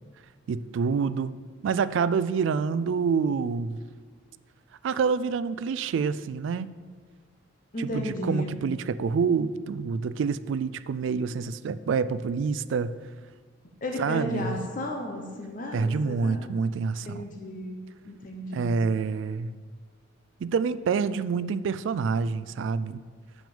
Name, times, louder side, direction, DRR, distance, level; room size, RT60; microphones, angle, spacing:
voice 1, 0.5-1.4 1.6-3.8 4.8-6.8 7.8-13.0 14.0-14.6 15.7-17.3 18.5-19.5 20.4-23.0, right 5 dB, 70° right, 15 dB, 0.3 m, -27 dB
voice 2, 7.7-8.6 13.8-16.4 17.0-18.8, left 1 dB, 40° left, 2 dB, 0.8 m, -34 dB
6.1 x 5.1 x 6.9 m, 1.5 s
head